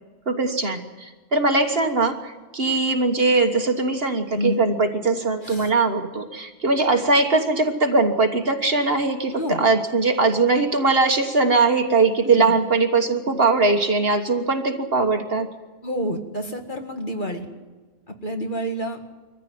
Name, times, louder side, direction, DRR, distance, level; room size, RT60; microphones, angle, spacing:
voice 1, 0.3-15.5, right 3 dB, 45° right, 6 dB, 1.6 m, -21 dB
voice 2, 4.3-4.7 5.4-5.7 9.3-9.6 12.2-12.6 15.8-17.5 18.2-19.0, equal, 35° left, 4 dB, 2.1 m, -28 dB
23.0 x 15.0 x 9.3 m, 1.3 s
omnidirectional pair, 1.5 m